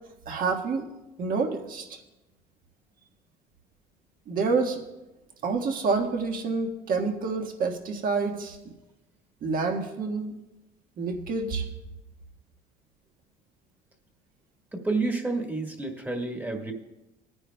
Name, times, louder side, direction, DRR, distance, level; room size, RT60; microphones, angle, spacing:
voice 1, 0.2-0.9 1.2-2.0 4.3-4.8 5.4-8.7 9.4-10.3 11.0-11.7, right 4 dB, 55° right, 3 dB, 1.6 m, -28 dB
voice 2, 14.7-16.7, right 3 dB, 10° right, 2 dB, 1.5 m, -29 dB
21.0 x 9.7 x 2.3 m, 0.98 s
cardioid pair, 110°, 17 cm